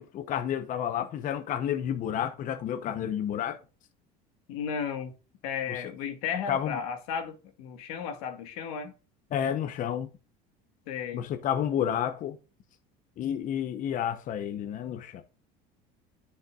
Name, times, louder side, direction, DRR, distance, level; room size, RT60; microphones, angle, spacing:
voice 1, 0.0-3.6 5.7-5.8 6.5-6.8 9.3-10.1 11.1-12.4 13.2-15.2, left 9 dB, 45° left, 0.9 m, -30 dB
voice 2, 4.5-5.1 5.4-8.9 10.9-11.2, left 7 dB, 90° left, 1.6 m, -34 dB
9.6 x 6.5 x 2.5 m
cardioid pair, 120°, 19 cm